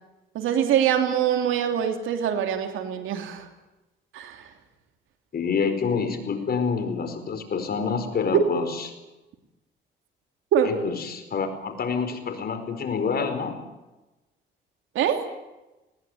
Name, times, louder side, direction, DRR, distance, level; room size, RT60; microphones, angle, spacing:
voice 1, 0.3-3.4 4.1-4.4 10.5-10.7 14.9-15.2, right 9 dB, 85° right, 6 dB, 3.1 m, -24 dB
voice 2, 5.3-8.9 10.6-13.6, left 5 dB, 50° left, 7 dB, 4.7 m, -27 dB
20.5 x 19.5 x 9.4 m, 1.0 s
cardioid pair, 90°, 20 cm